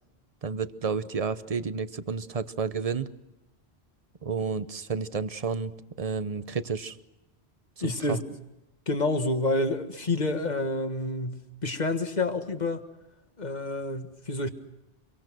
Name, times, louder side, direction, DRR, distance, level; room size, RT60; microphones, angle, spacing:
voice 1, 0.4-3.1 4.2-7.0 7.8-8.2, right 5 dB, 35° right, 13 dB, 0.9 m, -31 dB
voice 2, 7.8-8.2 8.9-12.8 13.4-14.5, left 2 dB, 45° left, 8 dB, 1.7 m, -28 dB
25.5 x 23.5 x 6.2 m, 0.95 s
omnidirectional pair, 1.1 m